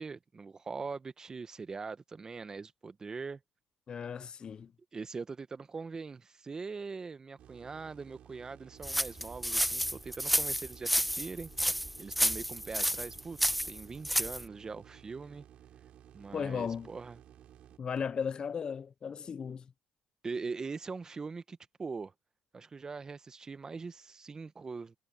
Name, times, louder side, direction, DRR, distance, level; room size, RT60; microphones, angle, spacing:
voice 1, 0.0-3.4 4.9-11.5 12.0-15.5 16.1-17.2 20.2-22.1 22.5-24.9, right 4 dB, 30° right, 1.2 m, -42 dB
voice 2, 3.9-4.7 16.3-16.9 17.8-19.6, left 6 dB, 45° left, 0.6 m, -36 dB
sound 1, 7.4-17.8, right 11 dB, 65° right, 7.2 m, -56 dB
sound 2, 8.8-14.4, equal, ahead, 1.0 m, -30 dB
supercardioid pair, 75°, 2 cm